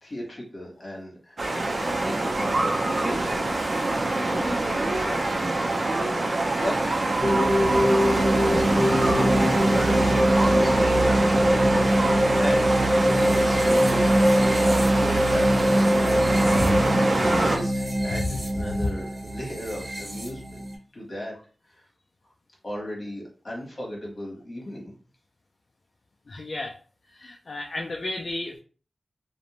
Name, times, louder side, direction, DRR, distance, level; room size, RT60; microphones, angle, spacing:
voice 1, 0.0-2.8 3.0-3.5 4.1-5.3 6.5-6.8 7.4-7.7 8.0-11.2 11.6-12.7 13.1-16.2 17.3-20.6 20.9-21.3 21.7-21.8 22.6-24.9, left 1 dB, 45° left, -3 dB, 1.3 m, -36 dB
sound 1, 1.4-17.6, right 2 dB, 50° right, 0.5 m, -25 dB
sound 2, 7.2-20.7, equal, 30° right, 1.1 m, -22 dB
voice 2, 26.3-26.8 27.1-28.6, left 2 dB, 60° left, 1 dB, 0.3 m, -31 dB
2.5 x 2.1 x 2.9 m, 0.39 s
wide cardioid pair, 80°, 0 cm